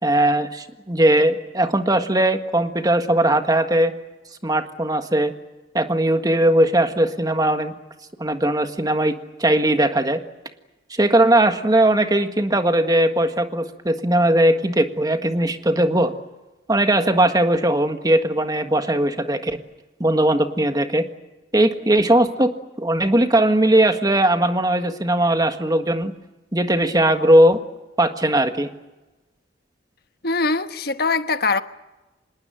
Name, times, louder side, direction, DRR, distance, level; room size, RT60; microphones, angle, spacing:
voice 1, 0.0-3.9 4.4-5.3 5.7-7.7 8.2-9.1 9.4-10.2 10.9-16.1 16.7-19.6 20.0-21.0 21.5-22.5 22.8-26.1 26.5-27.6 28.0-28.7, right 1 dB, 20° right, 1.6 m, -19 dB
voice 2, 30.2-31.6, left 3 dB, 55° left, 1.2 m, -22 dB
26.5 x 20.0 x 9.1 m
head